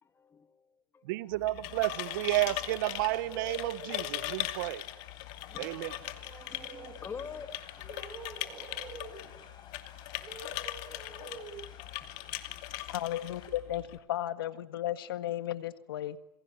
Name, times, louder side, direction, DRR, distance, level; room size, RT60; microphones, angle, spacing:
voice 1, 0.0-0.7 0.9-1.3 5.4-6.0 6.4-7.8 12.0-12.6 12.9-13.0, left 5 dB, 20° left, 10 dB, 2.4 m, -47 dB
voice 2, 1.1-4.8 5.6-6.0, right 17 dB, 65° right, 17 dB, 1.2 m, -31 dB
sound 1, 1.3-14.0, left 16 dB, 55° left, 2.5 m, -40 dB
sound 2, 1.7-13.5, left 7 dB, 40° left, 7.1 m, -54 dB
sound 3, 1.7-4.4 5.5-7.0 7.8-9.3 10.2-11.7, right 4 dB, 25° right, 7.5 m, -48 dB
voice 3, 12.9-16.2, left 13 dB, 80° left, 12 dB, 1.7 m, -34 dB
27.5 x 23.0 x 8.9 m, 0.87 s
supercardioid pair, 120°, 12 cm